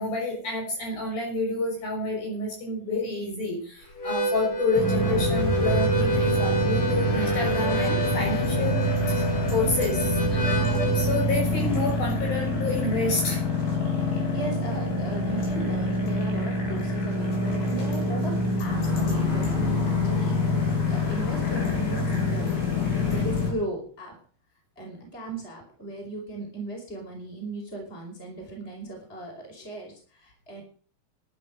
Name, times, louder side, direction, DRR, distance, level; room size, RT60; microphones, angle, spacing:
voice 1, 0.0-9.2 9.5-13.4, left 3 dB, 65° left, -1 dB, 8.3 m, -29 dB
Harmonica, 3.9-11.3, right 1 dB, 40° left, 3.2 m, -28 dB
sound 1, 4.8-23.5, left 1 dB, 85° left, 6.1 m, -26 dB
voice 2, 14.0-22.7 22.9-24.1 24.8-30.6, right 2 dB, 15° left, 1 dB, 5.1 m, -37 dB
14.0 x 10.0 x 6.7 m, 0.43 s
omnidirectional pair, 4.5 m